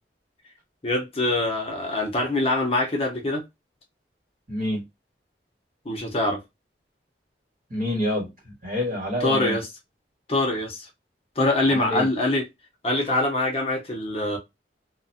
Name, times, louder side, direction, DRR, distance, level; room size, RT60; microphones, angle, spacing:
voice 1, 0.8-3.4 5.9-6.4 9.2-9.6 10.3-10.9 11.4-12.4 12.8-14.4, left 2 dB, 35° left, 0.7 m, -24 dB
voice 2, 4.5-4.8 7.7-9.6 11.6-12.1, left 1 dB, 50° right, 1.3 m, -27 dB
2.4 x 2.2 x 2.6 m
head